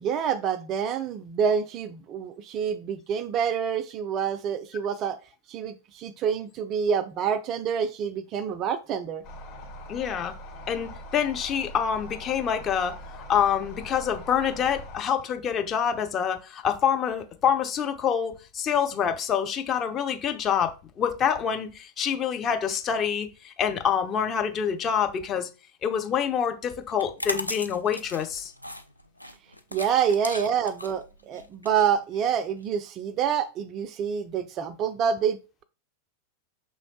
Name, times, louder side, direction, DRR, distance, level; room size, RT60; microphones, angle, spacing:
voice 1, 0.0-5.2 5.5-9.2 29.7-35.6, right 7 dB, 35° right, 0.4 m, -27 dB
sound 1, 9.2-15.0, equal, 45° left, 1.6 m, -42 dB
voice 2, 9.9-10.3 10.7-12.9 13.3-25.5 25.8-28.5, left 8 dB, 30° left, 0.7 m, -26 dB
sound 2, 26.9-32.6, left 1 dB, 90° left, 0.4 m, -37 dB
5.4 x 3.0 x 2.9 m
figure-of-eight pair, 90°, 0 cm